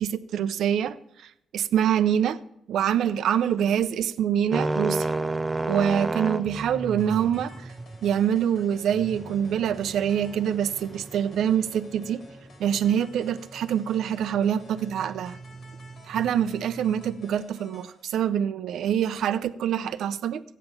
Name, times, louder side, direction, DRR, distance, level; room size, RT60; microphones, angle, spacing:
voice 1, 0.0-2.4 2.7-5.1 5.7-7.7 8.0-12.2 12.6-15.4 16.1-20.4, right 9 dB, 85° right, 13 dB, 0.7 m, -25 dB
sound 1, 4.5-17.2, right 2 dB, 25° right, 0.6 m, -34 dB
sound 2, 7.0-18.0, left 2 dB, 65° left, 2.9 m, -52 dB
14.0 x 9.3 x 7.0 m, 0.78 s
cardioid pair, 70°, 0 cm